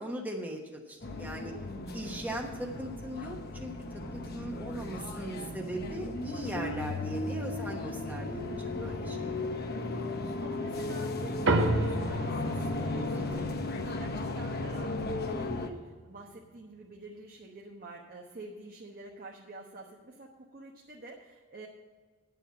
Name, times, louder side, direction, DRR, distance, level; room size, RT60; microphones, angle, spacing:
voice 1, 0.0-1.5 1.9-3.7 4.1-9.5 13.1-13.5, right 1 dB, 10° right, 0 dB, 1.1 m, -39 dB
sound 1, 1.0-15.7, left 2 dB, 50° left, 1.0 m, -35 dB
voice 2, 8.6-9.0 10.2-21.7, right 2 dB, 45° right, -1 dB, 1.1 m, -48 dB
sound 2, 11.5-16.2, right 2 dB, 65° right, 1.1 m, -33 dB
9.9 x 7.5 x 7.0 m, 1.4 s
head